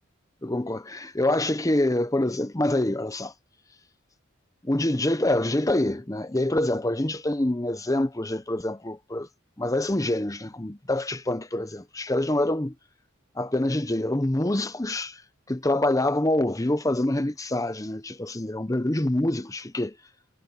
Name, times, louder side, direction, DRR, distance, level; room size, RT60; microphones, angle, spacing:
voice 1, 0.4-3.3 4.6-9.3 9.6-12.7 13.4-15.2 15.5-19.9, left 1 dB, 15° left, 0.8 m, -26 dB
head